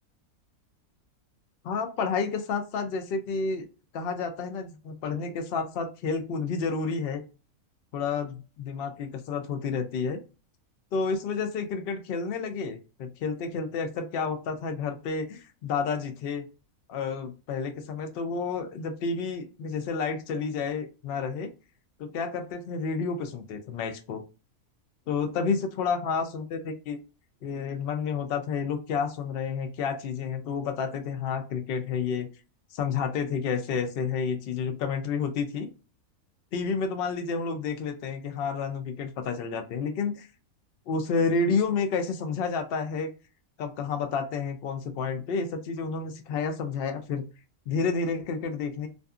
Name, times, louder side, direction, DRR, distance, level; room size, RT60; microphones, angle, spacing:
voice 1, 1.6-3.6 3.9-7.2 7.9-10.2 10.9-16.4 16.9-21.5 22.0-24.2 25.1-27.0 27.4-32.3 32.7-35.7 36.5-40.3 40.9-43.1 43.6-47.2 47.7-48.9, left 5 dB, 80° left, 6 dB, 0.5 m, -30 dB
2.6 x 2.5 x 2.3 m, 0.32 s
omnidirectional pair, 1.6 m